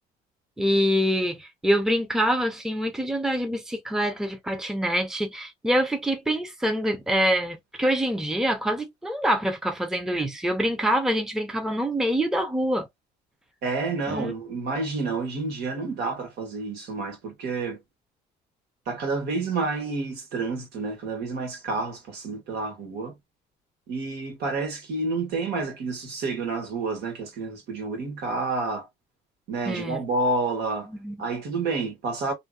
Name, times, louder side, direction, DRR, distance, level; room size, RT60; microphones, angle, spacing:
voice 1, 0.6-12.9 14.1-14.3 29.7-30.0 30.9-31.2, equal, 5° right, 0.7 m, -25 dB
voice 2, 13.6-17.8 18.9-23.1 23.9-28.9 29.5-30.9 31.2-32.3, right 3 dB, 75° right, 1.5 m, -29 dB
2.7 x 2.6 x 2.3 m
cardioid pair, 110°, 17 cm